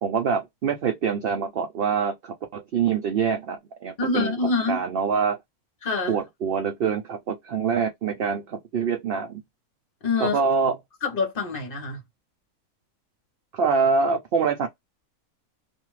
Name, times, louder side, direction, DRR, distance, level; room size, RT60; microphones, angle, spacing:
voice 1, 0.0-4.3 4.7-5.4 6.1-9.4 10.2-10.8 13.5-14.7, right 6 dB, 70° right, 0.5 m, -25 dB
voice 2, 4.0-4.8 5.8-6.2 10.0-10.4 11.0-12.0, left 4 dB, 40° left, 1.1 m, -25 dB
2.6 x 2.4 x 3.1 m
omnidirectional pair, 1.6 m